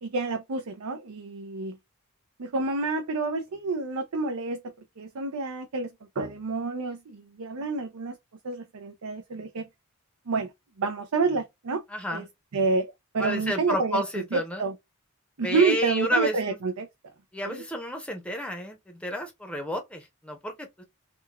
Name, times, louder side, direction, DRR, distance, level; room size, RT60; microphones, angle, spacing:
voice 1, 0.0-1.8 2.4-4.6 5.0-5.9 6.2-8.2 8.4-9.7 10.3-10.5 10.8-11.8 12.1-12.2 12.5-14.0 14.3-14.7 15.4-16.9 17.5-17.6, right 4 dB, 80° right, 0.5 m, -28 dB
voice 2, 11.9-12.3 13.2-14.6 15.4-16.6 17.3-20.8, equal, 5° left, 0.7 m, -31 dB
3.7 x 2.2 x 2.3 m
head